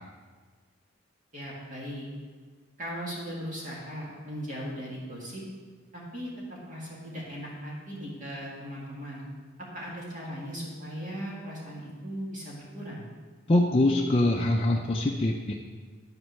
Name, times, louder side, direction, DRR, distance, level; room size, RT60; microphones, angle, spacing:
voice 1, 1.3-2.1 2.8-5.4 5.9-9.2 9.6-13.0, equal, 35° right, -4 dB, 2.1 m, -38 dB
voice 2, 13.5-15.5, left 1 dB, 25° left, -1 dB, 0.5 m, -23 dB
11.0 x 4.5 x 6.4 m, 1.5 s
head